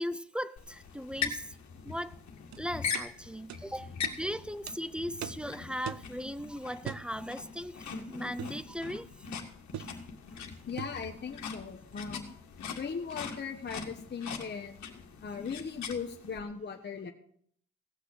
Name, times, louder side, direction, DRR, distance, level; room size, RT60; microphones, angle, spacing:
voice 1, 0.0-1.6 1.8-2.2 2.6-9.3 9.8-9.9, equal, 5° right, 0.6 m, -38 dB
sound 1, 0.6-16.4, left 6 dB, 65° left, 2.1 m, -41 dB
sound 2, 2.5-2.6 2.9-3.1 3.5-3.6 4.0-4.2 4.7-4.8 5.2-5.5 5.9-6.1 6.9-7.1 8.4-8.6 9.7-10.0 10.8-11.0, right 11 dB, 65° right, 0.6 m, -40 dB
voice 2, 10.7-12.3 12.8-14.8 15.2-17.1, left 6 dB, 35° left, 1.3 m, -38 dB
17.0 x 6.6 x 6.5 m
cardioid pair, 90°, 30 cm